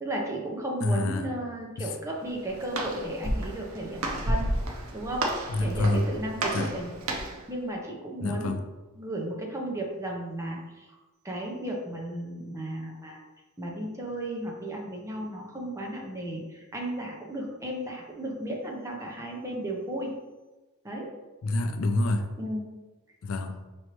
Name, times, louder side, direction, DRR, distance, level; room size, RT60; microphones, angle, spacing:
voice 1, 0.0-4.5 4.9-5.2 5.6-6.9 7.5-8.6 9.0-10.9 11.2-13.2 13.6-20.2 20.8-21.1 22.4-22.6, right 1 dB, 15° right, -1 dB, 0.8 m, -34 dB
voice 2, 0.8-1.3 1.8-1.9 5.5-6.1 6.5-6.7 8.2-8.6 21.4-22.3 23.2-23.6, left 2 dB, 70° left, 7 dB, 0.4 m, -27 dB
Walk footsteps, 2.1-7.5, right 1 dB, 75° right, 0.7 m, -32 dB
5.3 x 3.1 x 3.0 m, 1.1 s
head